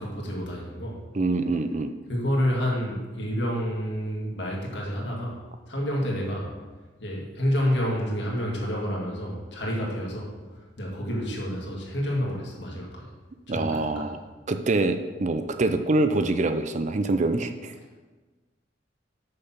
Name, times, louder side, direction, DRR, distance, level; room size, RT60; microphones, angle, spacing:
voice 1, 0.0-1.0 2.1-5.4 5.7-6.5 7.0-10.3 10.8-13.0 13.5-14.0, equal, 65° left, -2 dB, 2.0 m, -29 dB
voice 2, 1.1-1.9 13.5-14.2 14.5-17.7, right 2 dB, 40° right, 9 dB, 0.5 m, -25 dB
6.6 x 5.7 x 5.8 m, 1.3 s
head